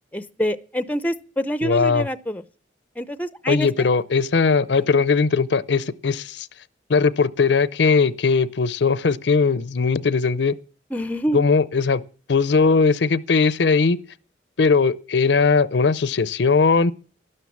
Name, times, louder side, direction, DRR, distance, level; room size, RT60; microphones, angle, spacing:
voice 1, 0.1-2.4 3.0-3.9 10.9-11.4, equal, 10° left, 0.6 m, -26 dB
voice 2, 1.6-2.1 3.5-6.5 6.9-10.6 11.3-12.0 12.3-14.0 14.6-16.9, left 4 dB, 70° left, 0.6 m, -19 dB
12.5 x 11.0 x 7.2 m
head